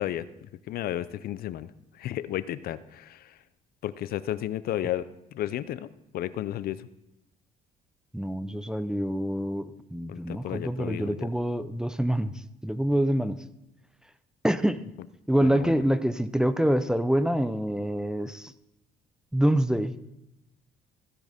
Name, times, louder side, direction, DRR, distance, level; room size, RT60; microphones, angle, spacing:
voice 1, 0.0-1.7 2.0-3.4 3.8-5.1 5.3-5.9 6.1-6.9 10.1-11.3 15.4-15.8, left 12 dB, 65° left, 16 dB, 0.5 m, -33 dB
voice 2, 8.1-12.3 12.6-13.4 14.4-14.8 15.3-18.5 19.3-19.9, right 1 dB, 5° right, 11 dB, 0.5 m, -26 dB
15.5 x 6.4 x 5.1 m, 0.85 s
cardioid pair, 110°, 17 cm